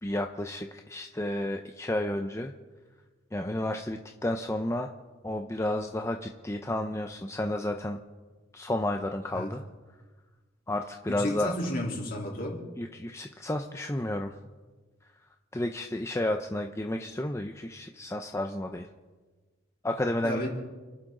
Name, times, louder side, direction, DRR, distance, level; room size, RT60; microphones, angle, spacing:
voice 1, 0.0-2.5 3.3-4.9 5.2-8.0 8.5-9.6 10.7-11.5 12.8-14.3 15.5-18.9 19.8-20.5, left 1 dB, 15° left, 0.7 m, -31 dB
voice 2, 11.1-12.6 20.2-20.5, left 1 dB, 50° left, 3.6 m, -32 dB
29.5 x 11.5 x 3.8 m
head